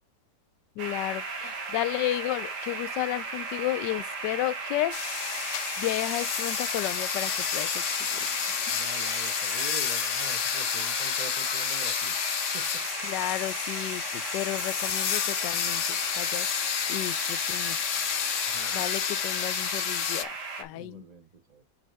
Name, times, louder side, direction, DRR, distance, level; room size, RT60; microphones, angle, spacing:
voice 1, 0.8-5.4 5.8-8.8 13.0-18.4 18.7-21.0, left 15 dB, 80° left, 1.2 m, -33 dB
sound 1, 0.8-20.6, right 4 dB, 65° right, 2.1 m, -36 dB
sound 2, 4.9-20.2, left 9 dB, 60° left, 0.8 m, -30 dB
voice 2, 8.7-12.1 12.5-12.8 18.5-18.8 20.7-21.6, right 5 dB, 30° right, 0.8 m, -44 dB
6.3 x 5.8 x 3.4 m
omnidirectional pair, 1.9 m